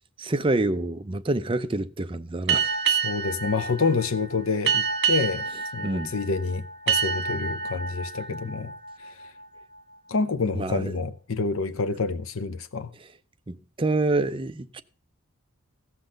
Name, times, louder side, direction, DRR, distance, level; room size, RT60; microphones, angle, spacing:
voice 1, 0.2-2.8 5.8-6.1 10.5-10.9 13.5-14.8, right 2 dB, 25° right, 0.5 m, -27 dB
sound 1, 2.5-9.8, right 6 dB, 55° right, 1.5 m, -28 dB
voice 2, 2.9-5.5 5.7-8.7 9.0-9.2 10.1-12.9, left 4 dB, 75° left, 0.7 m, -28 dB
15.0 x 5.9 x 6.3 m
head